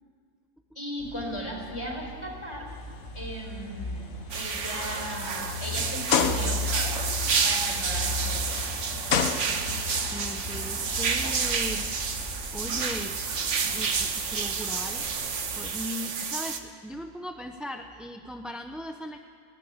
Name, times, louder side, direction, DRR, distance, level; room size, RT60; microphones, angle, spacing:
voice 1, 0.8-2.7 3.1-7.0 7.4-8.8, equal, 20° left, 0 dB, 4.2 m, -37 dB
sound 1, 1.0-15.7, left 2 dB, 65° left, 4.3 m, -37 dB
sound 2, 2.9-3.2 3.7-3.9 4.6-4.7 6.1-6.8 8.3-8.4 9.1-10.0, left 7 dB, 85° left, 1.5 m, -26 dB
sound 3, 4.3-16.6, right 5 dB, 60° right, 1.5 m, -30 dB
voice 2, 10.1-13.2 13.6-15.3 15.6-19.2, equal, ahead, 5 dB, 0.6 m, -38 dB
19.0 x 17.5 x 8.0 m, 2.2 s
omnidirectional pair, 1.4 m